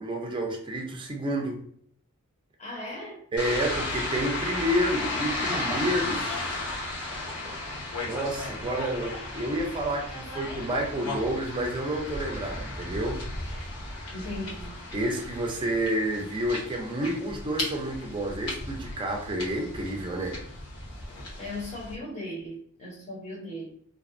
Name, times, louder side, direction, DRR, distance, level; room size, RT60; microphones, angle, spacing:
voice 1, 0.0-1.6 3.3-6.3 8.0-13.2 14.9-20.4, right 1 dB, 20° right, 1 dB, 0.4 m, -29 dB
voice 2, 2.6-3.2 14.1-14.7 21.4-23.7, left 1 dB, 35° left, -4 dB, 0.7 m, -37 dB
sound 1, 3.4-21.9, left 2 dB, 85° left, 0.9 m, -35 dB
2.6 x 2.1 x 2.4 m, 0.64 s
head